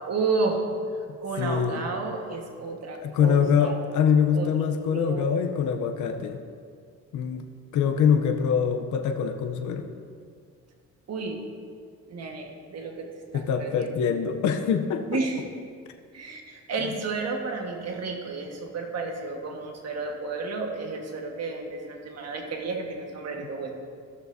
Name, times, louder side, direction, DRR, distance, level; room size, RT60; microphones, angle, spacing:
voice 1, 0.1-0.6 1.2-3.7 4.3-5.4 11.1-11.4 12.1-13.1 13.3-13.9 15.1-15.4 16.1-23.7, right 4 dB, 55° right, 1 dB, 1.5 m, -32 dB
voice 2, 1.4-1.9 3.0-6.4 7.1-7.5 7.7-9.9 13.3-15.2, left 7 dB, 75° left, 6 dB, 0.7 m, -24 dB
14.5 x 6.7 x 2.7 m, 2.1 s
cardioid pair, 90°, 30 cm